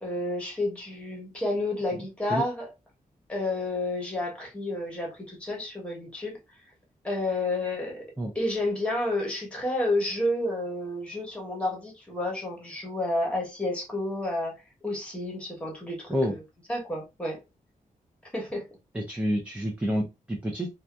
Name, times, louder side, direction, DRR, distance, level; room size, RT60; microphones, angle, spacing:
voice 1, 0.0-2.7 3.3-6.4 7.0-8.0 8.3-14.5 14.8-16.1 16.7-17.4 18.3-18.6, left 1 dB, 10° left, 1.0 m, -30 dB
voice 2, 18.9-20.7, equal, 10° right, 0.4 m, -28 dB
2.7 x 2.3 x 2.3 m
wide cardioid pair, 160°, 14 cm